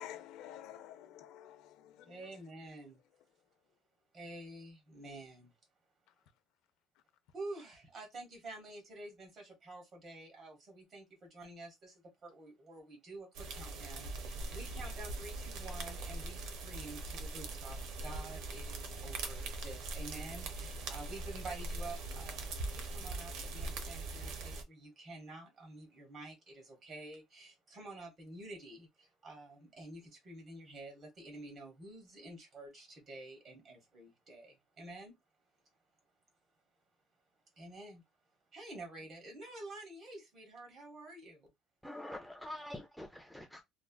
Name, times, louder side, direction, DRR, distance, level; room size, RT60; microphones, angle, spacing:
voice 1, 0.0-2.2, left 11 dB, 75° left, 0.5 m, -50 dB
voice 2, 2.0-3.0 4.1-5.5 7.3-35.2 37.6-38.0 38.5-41.5, right 2 dB, 35° right, 1.4 m, -49 dB
sound 1, 13.3-24.6, right 2 dB, 70° right, 0.7 m, -41 dB
voice 3, 41.8-43.6, left 1 dB, ahead, 0.4 m, -45 dB
3.1 x 2.3 x 2.2 m
cardioid pair, 140°, 0 cm